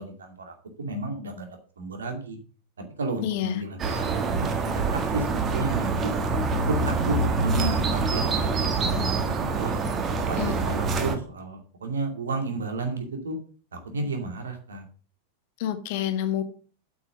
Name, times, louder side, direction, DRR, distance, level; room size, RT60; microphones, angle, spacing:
voice 1, 0.0-1.5 1.8-2.4 3.0-6.1 6.7-9.8 10.3-13.4 13.7-14.8, right 3 dB, 70° right, 5 dB, 2.3 m, -32 dB
voice 2, 3.2-3.6 10.4-10.6 15.6-16.4, left 10 dB, 50° left, 10 dB, 1.2 m, -28 dB
sound 1, 3.8-11.2, right 3 dB, 25° right, 1.5 m, -26 dB
8.3 x 6.2 x 6.1 m, 0.39 s
figure-of-eight pair, 90°, 0 cm